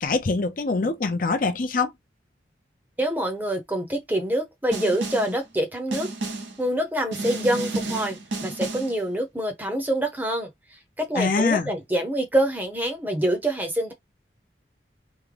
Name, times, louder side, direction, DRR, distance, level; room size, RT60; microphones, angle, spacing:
voice 1, 0.0-1.9 11.2-11.7, left 4 dB, 45° left, 0.6 m, -24 dB
voice 2, 3.0-6.1 6.6-10.5 11.0-13.9, right 1 dB, 10° right, 0.7 m, -26 dB
Snare drum, 4.7-5.4 5.9-6.6 7.1-9.0, right 2 dB, 85° right, 0.9 m, -31 dB
3.6 x 2.1 x 3.2 m
head